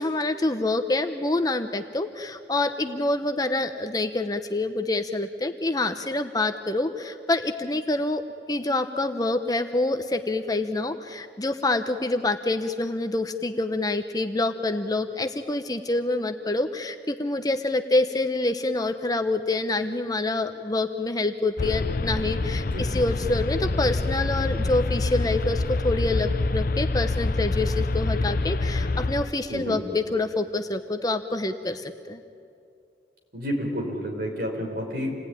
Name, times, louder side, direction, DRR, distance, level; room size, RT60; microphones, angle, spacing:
voice 1, 0.0-8.2 8.5-32.2, left 2 dB, 20° left, 7 dB, 0.8 m, -26 dB
sound 1, 21.6-29.3, left 2 dB, 50° left, 0.6 m, -26 dB
voice 2, 33.3-35.2, equal, 55° right, 1 dB, 5.3 m, -30 dB
28.0 x 18.5 x 9.9 m, 2.5 s
head